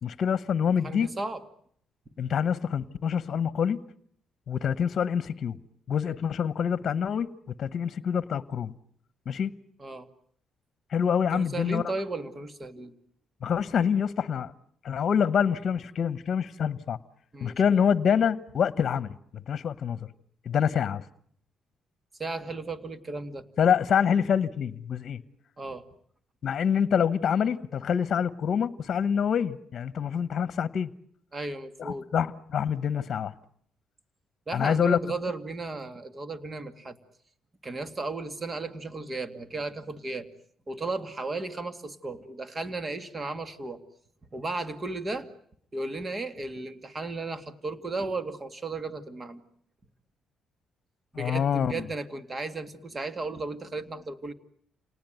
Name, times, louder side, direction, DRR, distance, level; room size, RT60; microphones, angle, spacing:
voice 1, 0.0-1.1 2.2-3.8 4.5-5.6 5.9-7.3 7.6-8.7 9.3-9.5 10.9-11.9 13.4-14.5 14.8-17.0 17.4-20.1 20.4-21.0 23.6-25.2 26.4-30.9 31.8-33.3 34.5-35.0 51.1-51.8, left 7 dB, 55° left, 1.1 m, -26 dB
voice 2, 0.8-1.4 9.8-10.1 11.3-13.0 17.3-17.8 22.2-23.5 25.6-25.8 31.3-32.1 34.5-37.0 37.6-40.3 40.7-43.8 44.3-45.3 45.7-49.4 51.2-54.3, right 3 dB, 30° right, 2.3 m, -35 dB
28.5 x 19.0 x 9.2 m
cardioid pair, 90°, 0 cm